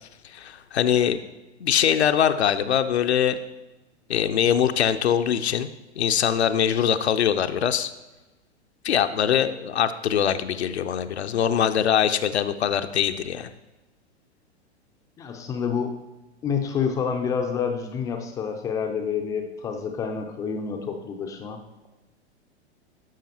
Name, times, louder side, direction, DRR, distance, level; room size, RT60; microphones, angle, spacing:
voice 1, 0.3-1.2 1.6-3.4 4.1-5.7 6.0-7.9 8.8-13.5, left 9 dB, 70° left, 9 dB, 0.5 m, -22 dB
voice 2, 15.2-16.0 16.4-21.6, left 6 dB, 10° left, 4 dB, 0.3 m, -28 dB
12.0 x 5.1 x 2.8 m, 1.1 s
figure-of-eight pair, 105°, 34 cm